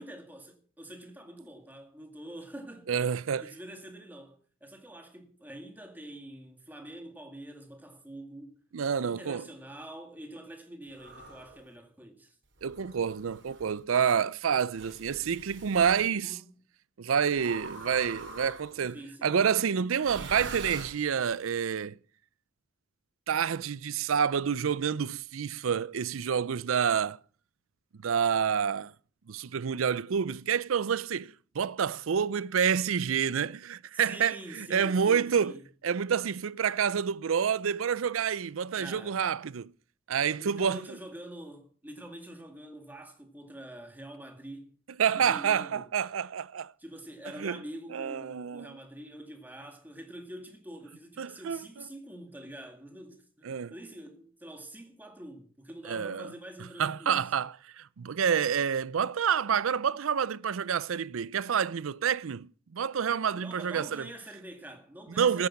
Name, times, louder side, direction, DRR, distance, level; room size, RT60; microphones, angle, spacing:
voice 1, 0.0-2.9 3.4-8.6 9.0-12.4 16.1-16.6 18.9-19.4 33.9-35.6 38.7-39.2 40.4-44.7 45.1-45.9 46.8-57.3 63.3-65.5, right 1 dB, 10° right, 2.1 m, -46 dB
voice 2, 2.9-3.5 8.7-9.4 12.6-16.4 17.0-22.0 23.3-27.2 28.0-28.9 29.3-35.5 35.8-39.7 40.1-40.8 45.0-46.7 47.4-47.6 47.9-48.8 51.2-51.6 53.5-53.7 55.9-56.3 56.8-62.5 62.7-64.1 65.2-65.5, right 7 dB, 90° right, 0.5 m, -28 dB
sound 1, 10.9-11.6 12.6-13.8 14.8-16.0 17.3-18.9 20.0-21.4, right 3 dB, 60° right, 3.5 m, -44 dB
14.0 x 9.7 x 5.9 m
head